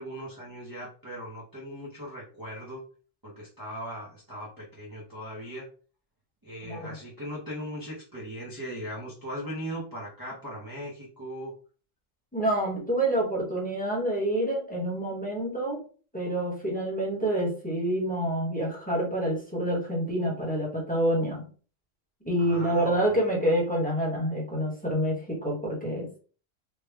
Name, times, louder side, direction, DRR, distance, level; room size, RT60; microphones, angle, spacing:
voice 1, 0.0-2.8 3.2-5.7 6.4-11.5 22.4-23.2, equal, 20° right, -5 dB, 0.6 m, -39 dB
voice 2, 6.6-6.9 12.3-15.8 16.1-21.4 22.2-26.2, right 1 dB, 5° left, -4 dB, 1.0 m, -27 dB
3.3 x 2.2 x 3.3 m, 0.40 s
omnidirectional pair, 1.3 m